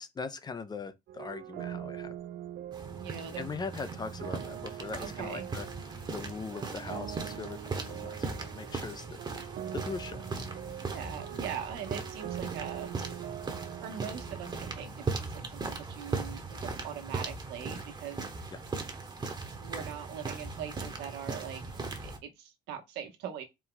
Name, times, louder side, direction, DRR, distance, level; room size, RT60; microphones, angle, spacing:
voice 1, 0.0-2.1 3.3-9.2 9.7-10.5 18.5-18.6, left 4 dB, 25° left, 0.5 m, -41 dB
sound 1, 1.1-14.8, right 11 dB, 70° right, 0.5 m, -43 dB
sound 2, 2.7-22.2, right 3 dB, 25° right, 1.0 m, -39 dB
voice 2, 3.0-3.5 5.0-5.5 10.9-13.0 13.2-13.3 13.8-18.3 19.6-21.6 22.0-23.4, right 8 dB, 90° right, 1.2 m, -41 dB
4.4 x 2.3 x 3.9 m
cardioid pair, 110°, 17 cm